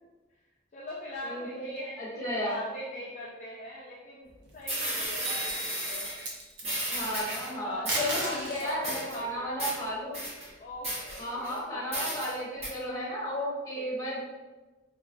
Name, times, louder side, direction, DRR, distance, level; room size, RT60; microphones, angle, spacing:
voice 1, 0.7-6.1 7.1-7.9 8.2-9.5 10.6-12.2 13.7-13.9, left 1 dB, 40° left, -5 dB, 0.4 m, -42 dB
voice 2, 1.2-1.6 2.0-2.6 6.9-10.2 11.2-14.2, equal, 20° left, -5 dB, 1.0 m, -33 dB
sound 1, 4.3-4.4 4.7-6.2 6.6-7.5 7.8-8.4 8.7-9.2 9.6-9.8 10.1-10.5 10.8-11.6 11.9-12.3 12.6-12.7, right 1 dB, 35° right, 1.2 m, -33 dB
sound 2, 4.5-5.0 5.4-5.6 6.0-6.8 7.7-8.7 10.2-11.4, right 1 dB, 75° right, 0.8 m, -36 dB
sound 3, 5.2-6.6, right 3 dB, 60° right, 0.4 m, -42 dB
3.8 x 2.8 x 2.6 m, 1.2 s
head